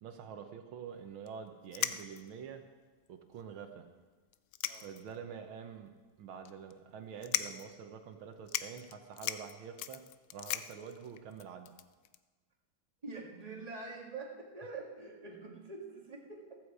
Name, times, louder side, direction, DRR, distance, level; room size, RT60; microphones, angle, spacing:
voice 1, 0.0-2.7 3.1-3.9 4.8-5.9 6.2-10.1 10.3-11.7, right 7 dB, 80° right, 6 dB, 1.8 m, -47 dB
sound 1, 1.3-1.4 1.7-2.4 3.1-3.2 3.4-3.5 4.3-5.2 5.6-5.7 6.4-6.7 7.2-7.7 8.1-8.2 8.5-12.2, left 12 dB, 80° left, 0.8 m, -38 dB
voice 2, 13.0-16.6, right 3 dB, 20° right, -1 dB, 2.0 m, -45 dB
15.0 x 14.0 x 4.8 m, 1.3 s
omnidirectional pair, 2.2 m